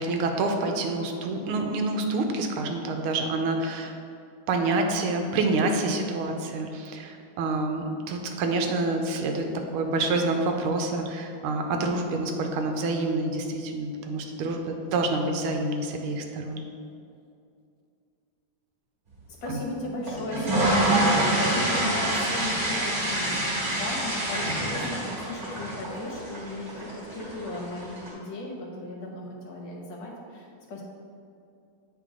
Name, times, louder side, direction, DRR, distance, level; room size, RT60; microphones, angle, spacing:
voice 1, 0.0-3.9 4.5-9.5 9.7-16.6 19.5-19.6, right 2 dB, 85° right, 4 dB, 1.5 m, -27 dB
voice 2, 19.3-30.8, left 1 dB, 65° left, -2 dB, 1.6 m, -36 dB
sound 1, 20.1-28.1, right 1 dB, 35° right, 1.7 m, -27 dB
8.3 x 3.7 x 3.6 m, 2.5 s
omnidirectional pair, 2.4 m